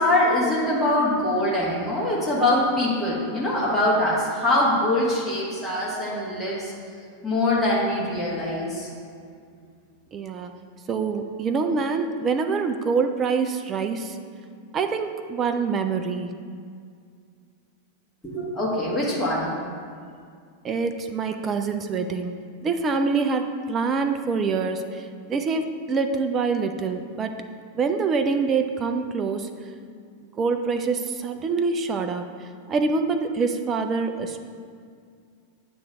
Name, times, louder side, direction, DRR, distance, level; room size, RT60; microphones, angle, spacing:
voice 1, 0.0-6.7 7.2-8.9 18.2-19.6, left 1 dB, 10° left, -8 dB, 1.7 m, -23 dB
voice 2, 10.1-10.5 10.9-14.2 14.7-16.3 20.6-22.3 22.6-27.4 27.7-29.5 30.3-34.4, right 4 dB, 25° right, 6 dB, 0.4 m, -25 dB
8.5 x 3.1 x 5.8 m, 2.2 s
figure-of-eight pair, 90°, 0 cm